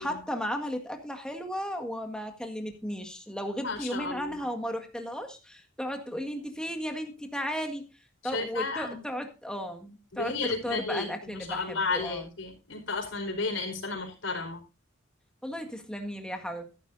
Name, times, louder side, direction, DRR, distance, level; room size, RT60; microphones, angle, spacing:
voice 1, 0.0-7.9 8.2-12.3 15.4-16.7, equal, 5° left, 4 dB, 1.7 m, -35 dB
voice 2, 3.6-4.3 8.3-9.0 10.1-14.6, left 3 dB, 75° left, 2 dB, 4.7 m, -33 dB
14.0 x 11.5 x 2.6 m, 0.29 s
head